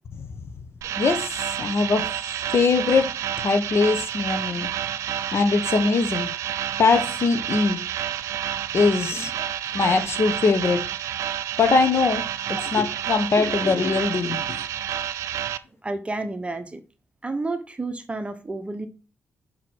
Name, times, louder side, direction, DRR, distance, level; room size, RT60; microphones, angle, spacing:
sound 1, 0.8-15.6, right 10 dB, 85° right, 0.5 m, -29 dB
voice 1, 1.6-2.1 2.5-3.1 3.4-4.7 5.3-6.3 6.8-7.8 8.7-9.3 9.7-10.8 11.6-12.2 12.7-14.4, left 4 dB, 55° left, 1.1 m, -21 dB
voice 2, 9.1-9.5 15.8-16.8 17.2-18.9, right 2 dB, 25° right, 1.2 m, -31 dB
5.9 x 4.7 x 6.1 m
cardioid pair, 65°, 5 cm